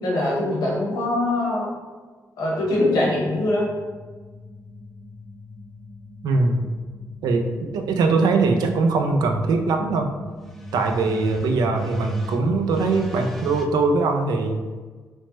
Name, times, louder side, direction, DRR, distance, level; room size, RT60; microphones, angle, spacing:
voice 1, 0.0-1.7 2.4-3.7, left 1 dB, 85° left, -4 dB, 1.0 m, -22 dB
sound 1, 2.6-13.7, left 1 dB, 5° left, 0.3 m, -38 dB
voice 2, 6.2-6.7 7.2-10.1 10.7-14.6, right 3 dB, 90° right, 4 dB, 0.3 m, -21 dB
3.1 x 2.1 x 2.9 m, 1.4 s
cardioid pair, 105°, 7 cm